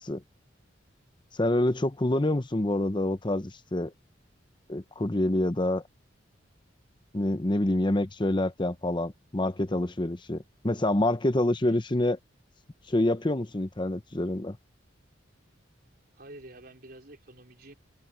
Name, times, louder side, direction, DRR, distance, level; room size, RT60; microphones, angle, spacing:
voice 1, 1.3-3.9 4.7-5.8 7.1-12.2 12.9-14.6, left 1 dB, 25° left, 0.9 m, -27 dB
voice 2, 16.1-17.7, right 1 dB, 55° right, 5.0 m, -48 dB
head